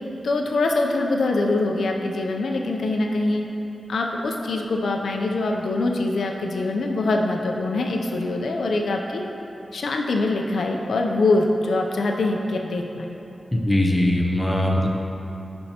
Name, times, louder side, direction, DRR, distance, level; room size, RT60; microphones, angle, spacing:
voice 1, 0.2-3.5 3.9-9.2 9.7-13.1, left 2 dB, 90° left, 2 dB, 0.5 m, -23 dB
voice 2, 13.5-14.9, left 1 dB, 10° left, -1 dB, 0.6 m, -20 dB
11.0 x 4.4 x 2.8 m, 3.0 s
wide cardioid pair, 150°, 0 cm